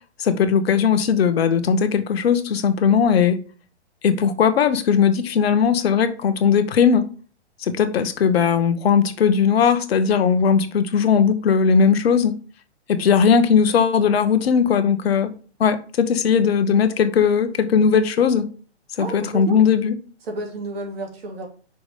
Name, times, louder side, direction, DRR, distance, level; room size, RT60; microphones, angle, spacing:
voice 1, 0.2-3.4 4.0-7.0 7.6-12.3 12.9-15.3 15.6-18.4 19.0-19.9, left 6 dB, 65° left, 1.2 m, -18 dB
voice 2, 19.0-19.6 20.2-21.5, right 2 dB, 60° right, 3.1 m, -31 dB
6.0 x 4.8 x 5.6 m
hypercardioid pair, 125°, 33 cm